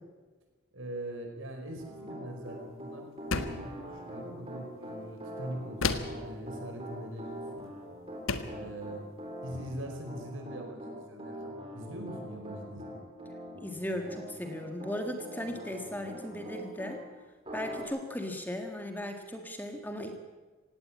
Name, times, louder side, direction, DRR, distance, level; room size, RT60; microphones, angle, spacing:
voice 1, 0.7-7.7 8.4-9.0 9.4-12.9, right 1 dB, 70° right, 4 dB, 4.8 m, -42 dB
Piano, 1.8-17.0 17.4-17.8, equal, 25° right, 4.0 m, -43 dB
sound 1, 3.3-3.7 5.8-6.3 7.6-7.7 8.3-8.6, left 4 dB, 80° left, 1.4 m, -31 dB
voice 2, 13.5-17.0 17.5-20.1, left 1 dB, 10° left, 5 dB, 1.6 m, -37 dB
18.0 x 17.0 x 8.6 m, 1.3 s
head